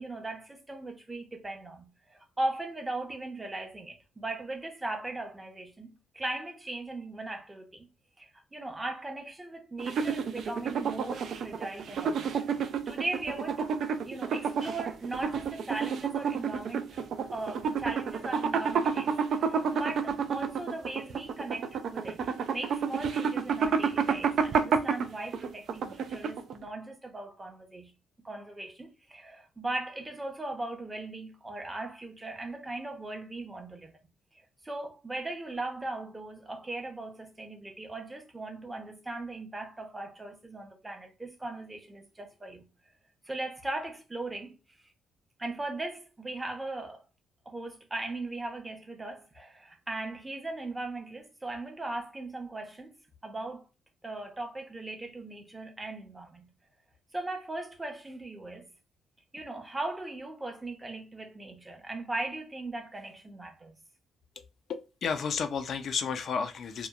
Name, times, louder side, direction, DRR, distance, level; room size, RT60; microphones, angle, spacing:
voice 1, 0.0-7.9 8.2-13.8 14.0-17.0 17.3-22.2 22.5-27.9 28.2-33.9 34.6-42.7 43.3-44.6 45.4-47.0 47.5-52.9 53.2-53.7 54.0-56.5 57.1-58.6 59.3-63.8, right 2 dB, 15° right, 0.7 m, -38 dB
sound 1, 9.8-26.6, right 6 dB, 65° right, 0.3 m, -30 dB
voice 2, 64.7-66.9, left 6 dB, 60° left, 0.3 m, -32 dB
2.9 x 2.1 x 2.3 m
cardioid pair, 90°, 0 cm